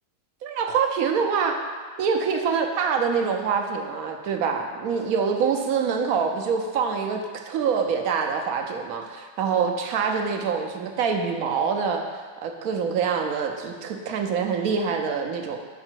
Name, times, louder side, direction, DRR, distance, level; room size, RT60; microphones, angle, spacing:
voice 1, 0.4-1.6 2.0-12.0 12.4-15.6, right 6 dB, 75° right, 4 dB, 1.0 m, -25 dB
5.9 x 4.8 x 4.5 m, 1.5 s
omnidirectional pair, 1.6 m